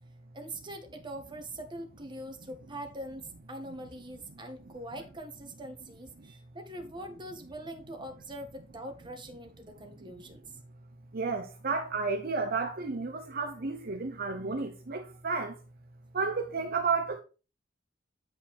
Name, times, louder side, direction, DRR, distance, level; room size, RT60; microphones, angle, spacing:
voice 1, 0.3-10.6, right 1 dB, 25° right, 1.7 m, -43 dB
voice 2, 11.1-15.6 16.1-17.2, right 4 dB, 55° right, 0.8 m, -32 dB
8.8 x 5.1 x 4.3 m
head